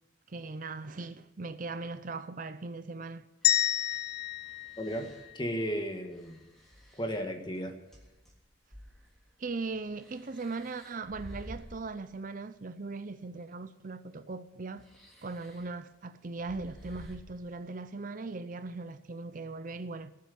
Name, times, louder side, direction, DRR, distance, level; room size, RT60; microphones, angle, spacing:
voice 1, 0.3-3.3 9.4-14.8 15.2-20.1, right 3 dB, 45° right, 0.6 m, -39 dB
sound 1, 3.4-5.7, left 12 dB, 55° left, 0.9 m, -30 dB
sound 2, 3.4-5.4 6.1-8.4 8.7-12.0 13.1-13.2 14.7-15.7 16.4-17.2, equal, ahead, 3.4 m, -52 dB
voice 2, 4.8-5.1 5.3-6.4 7.0-7.7, equal, 25° left, 1.7 m, -34 dB
19.5 x 7.6 x 8.5 m
head